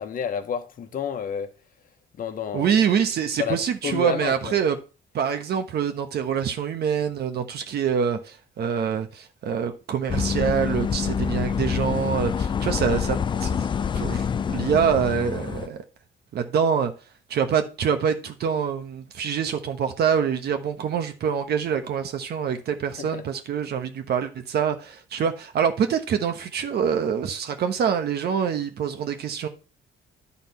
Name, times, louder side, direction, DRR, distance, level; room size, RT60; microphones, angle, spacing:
voice 1, 0.0-1.5 2.2-2.7 3.4-4.6 23.0-23.2, left 7 dB, 45° left, 1.2 m, -30 dB
voice 2, 2.5-4.8 5.1-13.7 13.9-15.8 16.3-16.9 17.3-29.5, right 7 dB, 55° right, 1.2 m, -25 dB
sound 1, 10.1-15.7, left 7 dB, 25° left, 0.3 m, -26 dB
11.5 x 4.2 x 5.5 m
cardioid pair, 160°, 20 cm